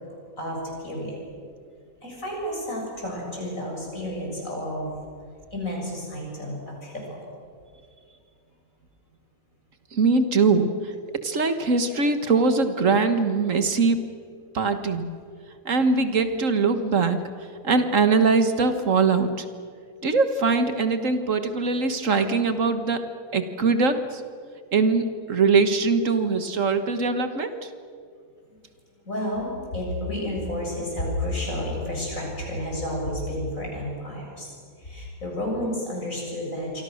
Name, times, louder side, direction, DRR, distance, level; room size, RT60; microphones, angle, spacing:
voice 1, 0.4-1.2 2.0-5.0 5.5-7.2 29.0-34.5 34.8-36.8, left 1 dB, 70° left, -2 dB, 8.0 m, -31 dB
voice 2, 9.9-10.7 11.1-14.0 14.5-15.1 15.7-17.2 17.6-19.5 20.0-23.0 23.3-24.2 24.7-27.7, right 4 dB, 65° right, 9 dB, 1.8 m, -22 dB
27.5 x 24.5 x 6.5 m, 2.2 s
omnidirectional pair, 1.5 m